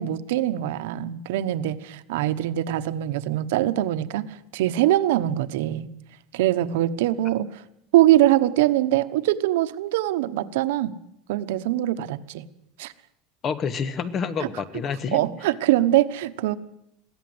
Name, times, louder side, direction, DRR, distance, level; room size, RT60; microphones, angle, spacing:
voice 1, 0.0-5.9 6.3-7.6 7.9-10.9 11.3-12.4 12.8-12.9 14.4-14.5 15.1-16.6, right 14 dB, 85° right, 12 dB, 1.1 m, -23 dB
voice 2, 13.4-15.2, left 6 dB, 30° left, 15 dB, 1.2 m, -28 dB
22.5 x 16.0 x 8.0 m, 0.81 s
supercardioid pair, 165°, 0 cm